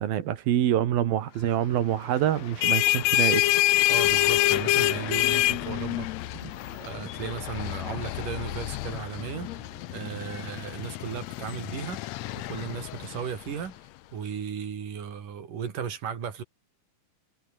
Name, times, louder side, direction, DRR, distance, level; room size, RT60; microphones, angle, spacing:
voice 1, 0.0-3.5, right 11 dB, 85° right, 3.6 m, -26 dB
sound 1, 2.3-13.7, left 16 dB, 80° left, 1.5 m, -27 dB
voice 2, 3.9-6.1 6.8-9.5 9.9-12.1 12.4-13.8 14.1-16.4, right 7 dB, 65° right, 4.6 m, -35 dB
sound 2, 5.4-10.5, right 3 dB, 35° right, 6.7 m, -51 dB
omnidirectional pair, 4.0 m